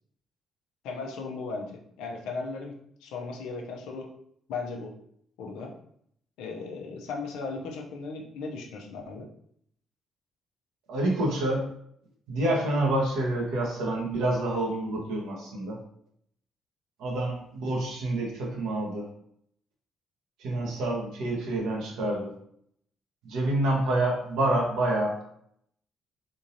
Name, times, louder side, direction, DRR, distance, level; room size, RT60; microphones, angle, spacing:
voice 1, 0.8-4.1 4.5-4.9 5.4-5.7 6.4-9.3, left 4 dB, 75° left, 1 dB, 0.7 m, -37 dB
voice 2, 10.9-11.6 12.3-15.8 17.0-19.1 20.4-22.3 23.2-25.2, right 1 dB, 75° right, -2 dB, 1.2 m, -27 dB
3.8 x 3.7 x 2.8 m, 0.69 s
hypercardioid pair, 50°, 0 cm